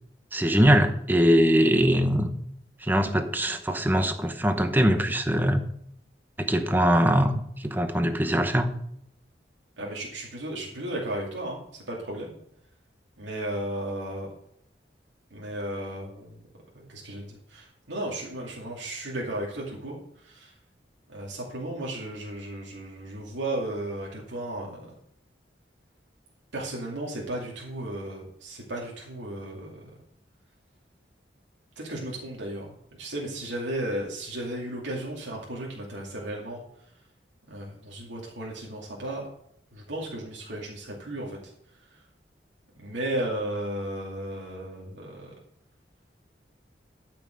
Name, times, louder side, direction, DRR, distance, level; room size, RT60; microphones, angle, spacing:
voice 1, 0.3-2.3 2.8-5.6 6.4-7.3 7.6-8.7, equal, 10° right, 7 dB, 0.8 m, -22 dB
voice 2, 9.8-12.3 13.2-14.3 15.3-16.4 16.7-20.0 20.2-20.5 21.1-24.9 26.5-29.9 31.8-36.6 37.5-39.2 39.7-41.4 42.7-45.4, right 1 dB, 90° right, -3 dB, 2.4 m, -34 dB
13.0 x 5.9 x 6.3 m, 0.73 s
head